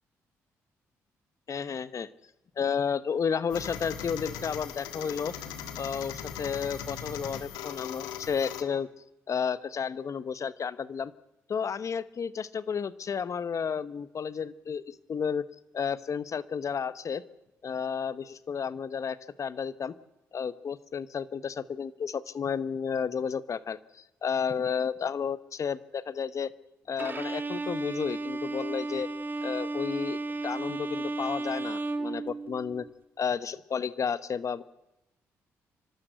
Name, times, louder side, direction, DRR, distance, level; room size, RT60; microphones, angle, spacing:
voice 1, 1.5-2.1 2.6-5.3 5.8-8.9 9.3-11.1 11.5-15.4 15.7-17.2 17.6-19.9 20.3-26.5 26.9-29.1 29.4-32.9 33.2-34.6, left 6 dB, 50° left, 16 dB, 1.0 m, -32 dB
sound 1, 3.5-8.6, left 8 dB, 90° left, 1.5 m, -39 dB
Bowed string instrument, 27.0-32.9, right 2 dB, 30° right, 1.7 m, -34 dB
27.0 x 12.5 x 8.0 m, 0.95 s
supercardioid pair, 50°, 7 cm